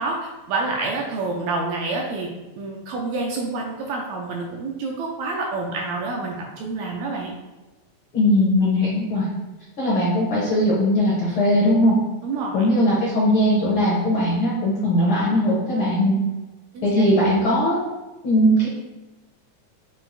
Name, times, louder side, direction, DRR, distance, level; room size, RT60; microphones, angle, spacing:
voice 1, 0.0-2.3 2.6-7.3 12.2-12.7 16.7-16.9 17.2-17.4, right 3 dB, 80° right, 0 dB, 1.6 m, -28 dB
voice 2, 8.1-9.3 9.8-12.0 12.5-16.2 16.8-17.9 18.2-18.7, equal, 70° left, -7 dB, 1.2 m, -19 dB
6.2 x 2.3 x 2.5 m, 1.1 s
omnidirectional pair, 3.4 m